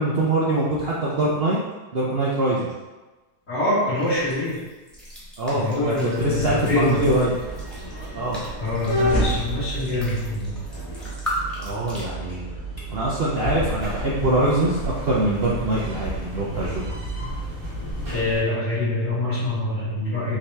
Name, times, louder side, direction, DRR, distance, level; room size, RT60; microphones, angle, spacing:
voice 1, 0.0-1.6 1.9-2.7 5.4-7.3 8.1-8.4 11.6-12.5 12.9-16.8, right 2 dB, 60° right, -6 dB, 0.6 m, -23 dB
voice 2, 3.5-4.6 5.5-7.2 8.6-10.5 18.0-20.4, left 2 dB, 50° left, -11 dB, 1.9 m, -25 dB
sound 1, 3.9-12.0, equal, ahead, 1.0 m, -37 dB
sound 2, 6.2-18.2, right 1 dB, 65° left, 2.0 m, -31 dB
sound 3, 13.3-18.4, left 1 dB, 80° right, 2.2 m, -34 dB
5.1 x 2.9 x 3.3 m, 1.2 s
omnidirectional pair, 1.8 m